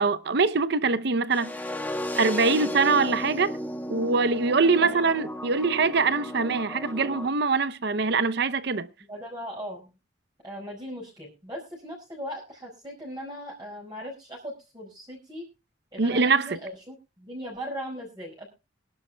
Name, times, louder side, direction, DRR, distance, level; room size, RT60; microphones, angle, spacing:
voice 1, 0.0-1.5 2.2-3.5 3.9-8.9 16.0-16.6, right 4 dB, 60° right, 0.7 m, -23 dB
sound 1, 1.3-7.3, equal, 10° left, 1.1 m, -34 dB
voice 2, 4.8-5.1 9.1-9.9 10.4-15.5 15.9-18.5, equal, 20° right, 5.1 m, -38 dB
24.0 x 11.5 x 2.3 m
head